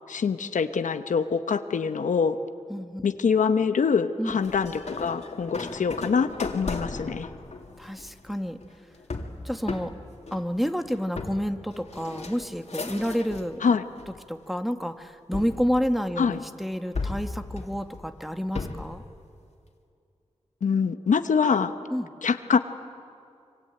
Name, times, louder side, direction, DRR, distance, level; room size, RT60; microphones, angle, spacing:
voice 1, 0.1-2.4 3.0-7.3 13.6-13.8 16.2-16.4 20.6-21.7 22.2-22.6, left 6 dB, 90° left, 9 dB, 1.0 m, -24 dB
voice 2, 2.7-3.0 4.2-4.4 7.8-8.6 9.4-9.9 10.3-13.6 14.3-19.0 21.9-22.1, equal, ahead, 6 dB, 1.5 m, -29 dB
sound 1, 4.4-13.6 14.0-14.6 15.3-16.4 16.9-19.0, left 3 dB, 60° left, 2.7 m, -36 dB
25.5 x 24.0 x 8.9 m, 2.5 s
cardioid pair, 55°, 13 cm